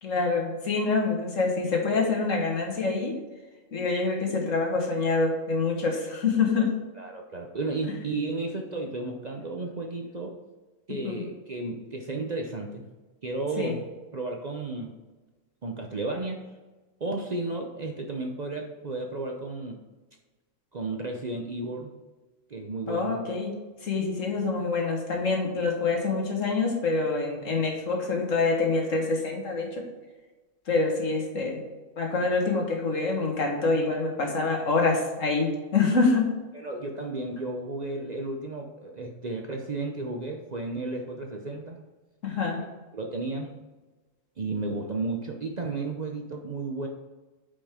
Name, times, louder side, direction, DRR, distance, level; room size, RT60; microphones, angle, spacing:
voice 1, 0.0-3.2 3.7-6.7 11.0-11.2 13.6-13.7 22.9-23.5 23.8-29.8 30.7-31.6 32.0-36.2 42.2-42.6, left 3 dB, 75° left, 1 dB, 1.8 m, -26 dB
voice 2, 7.0-10.3 10.9-12.8 13.2-13.8 14.1-15.0 15.6-16.5 17.0-19.8 20.7-21.9 22.5-23.2 36.5-41.8 42.9-43.5 44.4-46.9, right 3 dB, 45° right, 2 dB, 0.6 m, -33 dB
8.6 x 5.3 x 3.6 m, 1.2 s
omnidirectional pair, 1.4 m